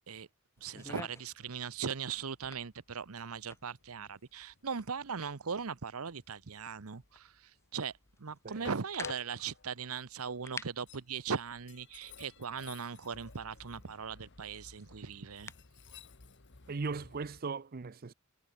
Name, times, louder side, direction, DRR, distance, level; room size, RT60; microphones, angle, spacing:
Train, 0.6-17.4, left 4 dB, 55° left, 1.5 m, -55 dB
sound 1, 0.6-15.8, left 3 dB, 10° left, 0.8 m, -53 dB
voice 1, 0.6-7.9 8.2-15.5, right 6 dB, 80° right, 0.9 m, -39 dB
voice 2, 8.4-8.8 16.7-18.1, right 4 dB, 45° right, 0.6 m, -38 dB
head